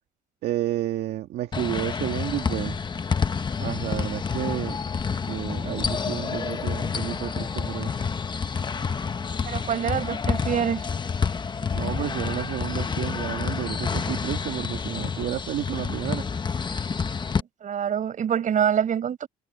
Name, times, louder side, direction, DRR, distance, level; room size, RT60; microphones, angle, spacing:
voice 1, 0.4-2.8 3.6-4.8 5.3-8.1 11.7-16.3, right 13 dB, 75° right, 2.1 m, -31 dB
sound 1, 1.5-17.4, left 5 dB, 25° left, 1.1 m, -29 dB
voice 2, 9.4-10.9 17.4-19.3, right 8 dB, 50° right, 7.7 m, -26 dB
cardioid pair, 110°, 17 cm